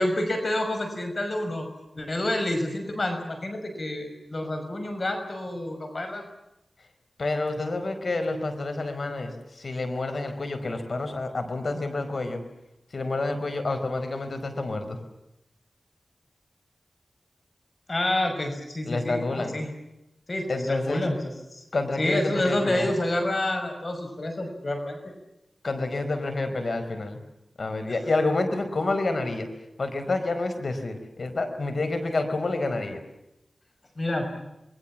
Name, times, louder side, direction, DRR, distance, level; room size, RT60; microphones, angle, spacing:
voice 1, 0.0-1.7 2.0-6.2 17.9-19.7 20.3-21.6 22.0-25.0 34.0-34.4, left 1 dB, 55° left, 5 dB, 5.9 m, -28 dB
voice 2, 7.2-12.4 12.9-15.0 18.9-19.5 20.5-21.1 21.7-22.9 25.6-27.2 27.6-29.5 29.8-33.0, left 2 dB, 70° left, 8 dB, 4.9 m, -28 dB
28.5 x 21.5 x 7.4 m, 0.91 s
cardioid pair, 45°, 0 cm